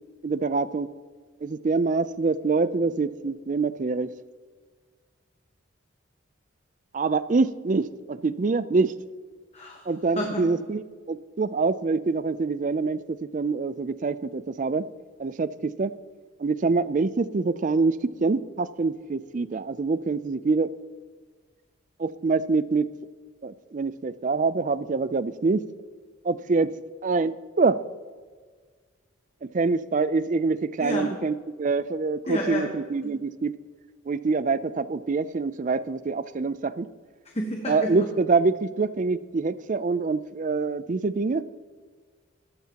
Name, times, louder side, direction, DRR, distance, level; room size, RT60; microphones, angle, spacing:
voice 1, 0.2-0.9 1.4-4.1 6.9-8.9 9.9-14.9 15.2-15.9 16.4-20.7 22.0-22.9 23.4-25.6 26.2-26.7 27.0-27.8 29.4-33.5 34.1-36.9 37.7-41.4, right 4 dB, 40° right, 16 dB, 0.4 m, -25 dB
voice 2, 9.5-9.9 10.2-10.5 30.8-31.1 32.3-32.7 33.0-33.1 37.2-38.1, left 1 dB, 30° left, 2 dB, 1.1 m, -30 dB
17.0 x 13.5 x 2.9 m, 1.5 s
head